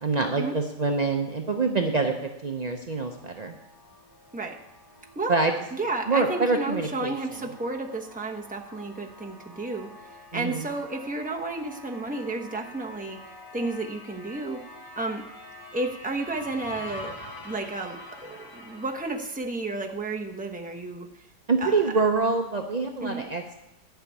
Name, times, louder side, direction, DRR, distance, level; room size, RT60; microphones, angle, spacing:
voice 1, 0.0-3.5 5.3-5.5 6.1-7.2 10.3-10.7 21.5-23.5, right 3 dB, 65° right, 3 dB, 0.4 m, -25 dB
sound 1, 3.0-19.0, left 2 dB, 15° left, 1.2 m, -46 dB
voice 2, 5.7-9.9 10.3-13.2 13.5-14.6 15.0-15.2 15.7-17.1 17.4-21.1 21.6-22.0 23.0-23.2, right 2 dB, 5° right, 1 dB, 0.7 m, -32 dB
11.5 x 5.7 x 8.4 m, 0.95 s
omnidirectional pair, 1.9 m